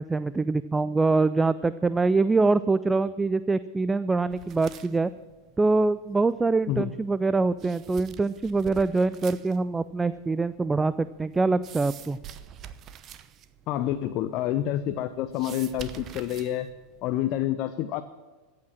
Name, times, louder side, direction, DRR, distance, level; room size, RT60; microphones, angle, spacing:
voice 1, 0.0-5.1 5.6-12.2, right 3 dB, 15° right, 16 dB, 0.4 m, -24 dB
sound 1, 4.3-17.4, right 9 dB, 35° right, 0.8 m, -48 dB
voice 2, 13.7-16.7 17.0-18.0, left 12 dB, 45° left, 10 dB, 0.7 m, -28 dB
14.0 x 8.8 x 7.3 m, 1.3 s
figure-of-eight pair, 85°, 0 cm